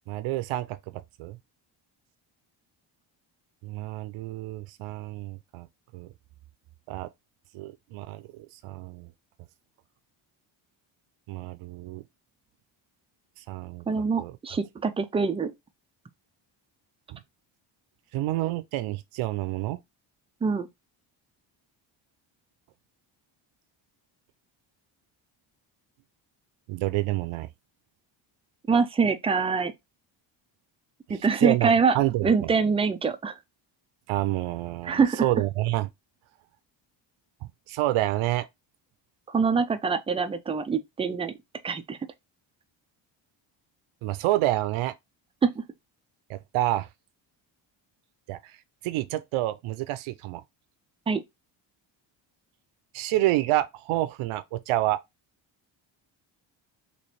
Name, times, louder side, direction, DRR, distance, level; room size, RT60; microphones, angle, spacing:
voice 1, 0.1-0.8 1.2-1.4 3.6-5.7 5.9-6.1 6.9-7.1 7.5-9.1 11.3-12.0 13.5-13.8 14.2-14.3 17.1-17.2 18.1-19.8 26.7-27.5 31.1-32.5 34.1-35.9 37.7-38.5 44.0-44.9 46.3-46.9 48.3-48.4 48.8-50.4 52.9-55.0, right 16 dB, 80° right, 0.6 m, -28 dB
voice 2, 13.9-15.5 20.4-20.7 28.7-29.7 31.1-31.9 32.2-33.4 34.8-35.3 39.3-41.3 41.6-42.0 45.4-45.5 51.1-51.2, right 5 dB, 15° right, 0.3 m, -24 dB
3.2 x 3.0 x 4.2 m
cardioid pair, 120°, 48 cm